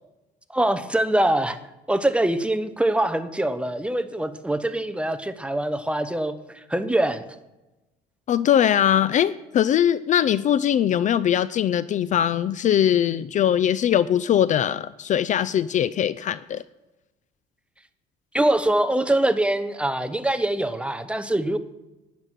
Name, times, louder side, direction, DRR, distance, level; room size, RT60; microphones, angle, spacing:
voice 1, 0.5-1.6 1.9-7.2 18.3-21.6, right 1 dB, 5° right, 0.9 m, -23 dB
voice 2, 8.3-16.6, left 10 dB, 45° left, 0.4 m, -21 dB
12.0 x 6.2 x 9.1 m
cardioid pair, 110°, 17 cm